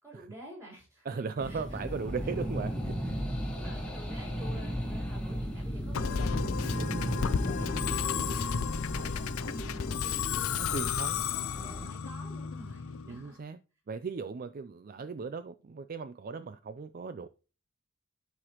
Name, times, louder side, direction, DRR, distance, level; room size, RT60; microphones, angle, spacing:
voice 1, 0.0-1.9 3.5-10.7 11.2-13.4, equal, 15° right, 3.8 m, -51 dB
voice 2, 1.1-3.2 6.8-7.2 10.7-11.3 13.1-13.6 13.9-17.3, right 5 dB, 40° right, 0.3 m, -37 dB
sound 1, 1.4-11.9, equal, 5° left, 1.7 m, -35 dB
Musical instrument, 5.9-13.3, left 7 dB, 80° left, 0.5 m, -33 dB
12.5 x 4.9 x 3.0 m
head